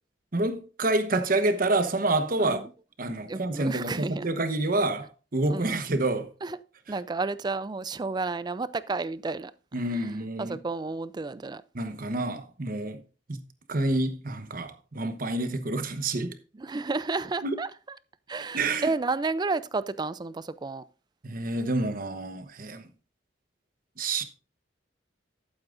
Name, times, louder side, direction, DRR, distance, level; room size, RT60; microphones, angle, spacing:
voice 1, 0.3-2.6 3.0-6.3 9.7-10.6 11.7-13.0 13.3-13.4 13.7-16.3 17.4-17.5 18.5-18.9 21.2-22.8 24.0-24.2, right 2 dB, 50° right, 1.0 m, -28 dB
voice 2, 2.4-2.7 3.3-4.3 5.5-5.7 6.4-6.6 6.9-9.5 9.9-11.6 16.5-17.7 18.3-20.8, right 3 dB, 25° right, 0.4 m, -31 dB
11.5 x 8.9 x 2.5 m
head